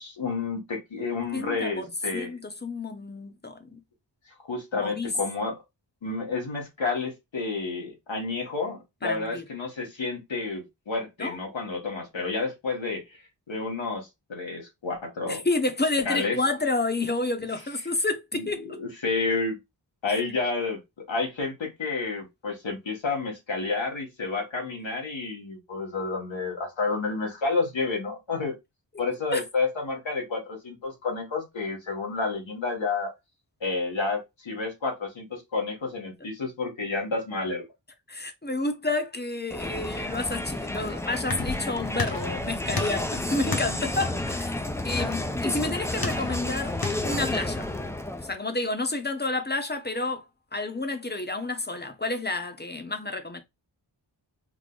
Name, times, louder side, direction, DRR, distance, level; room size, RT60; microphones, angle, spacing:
voice 1, 0.0-2.3 4.5-5.5 6.0-13.0 13.5-15.4 16.0-16.4 18.3-19.6 20.0-20.8 21.1-28.5 29.0-33.1 33.6-37.6, left 4 dB, 85° left, 1.4 m, -30 dB
voice 2, 1.3-3.8 4.7-5.1 9.0-9.4 11.2-11.4 15.3-18.8 20.1-20.2 29.3-29.4 38.1-46.8 47.0-47.8 48.2-50.3 50.5-53.4, left 2 dB, 20° left, 0.8 m, -30 dB
Crowd, 39.5-48.4, left 1 dB, 5° left, 0.5 m, -31 dB
sound 1, 41.2-47.9, left 3 dB, 50° left, 1.1 m, -36 dB
3.8 x 2.1 x 3.8 m
wide cardioid pair, 45°, 45 cm